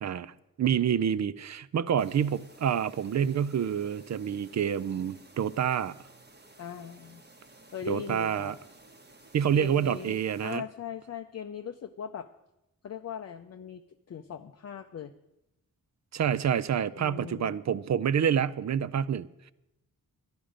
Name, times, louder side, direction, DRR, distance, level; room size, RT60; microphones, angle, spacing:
voice 1, 0.0-0.3 0.6-5.9 7.9-8.5 9.3-10.6 16.1-19.5, right 8 dB, 50° right, 0.4 m, -28 dB
sound 1, 2.0-10.6, right 2 dB, 30° right, 1.2 m, -55 dB
voice 2, 6.6-7.2 7.7-8.5 9.5-12.3 12.8-15.1 17.0-17.6, left 7 dB, 45° left, 0.5 m, -40 dB
12.0 x 11.0 x 5.0 m
wide cardioid pair, 135°, 35 cm